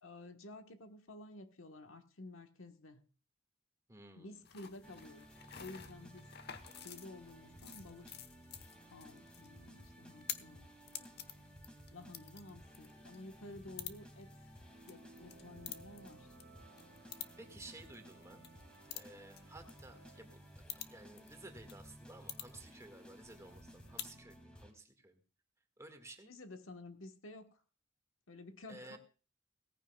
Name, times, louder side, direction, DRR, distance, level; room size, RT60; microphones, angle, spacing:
voice 1, 0.0-3.0 4.2-5.3 5.6-6.3 6.8-8.2 8.9-11.1 11.9-14.3 14.8-16.3 26.2-27.6 28.3-29.0, left 2 dB, 80° left, 6 dB, 1.3 m, -52 dB
voice 2, 3.9-4.4 17.4-18.4 18.9-20.4 20.8-25.2 25.8-26.3 28.7-29.0, right 2 dB, 15° right, 5 dB, 1.8 m, -54 dB
sound 1, 4.4-24.2, left 10 dB, 55° left, 1.1 m, -52 dB
sound 2, 4.8-24.7, equal, 5° left, 2.3 m, -57 dB
sound 3, 14.6-20.3, right 3 dB, 85° right, 1.9 m, -63 dB
18.0 x 15.0 x 2.3 m, 0.36 s
head